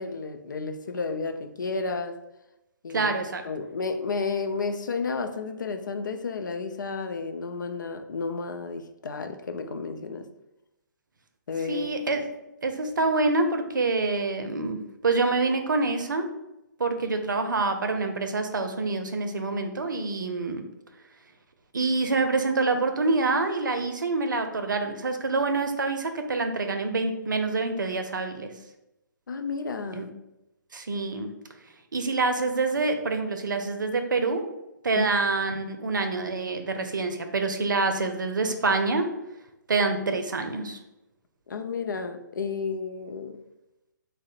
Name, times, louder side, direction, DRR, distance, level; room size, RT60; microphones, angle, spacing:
voice 1, 0.0-2.2 2.8-3.1 3.4-10.3 11.5-12.0 29.3-30.1 34.9-35.1 41.5-43.4, left 4 dB, 70° left, 7 dB, 0.4 m, -32 dB
voice 2, 2.9-3.4 11.7-12.2 12.6-16.3 16.8-20.6 21.7-28.5 29.9-30.1 30.7-31.3 31.9-34.5 34.8-39.1 39.7-40.8, right 3 dB, 75° right, 6 dB, 0.5 m, -26 dB
3.6 x 2.1 x 4.1 m, 0.92 s
figure-of-eight pair, 135°, 10 cm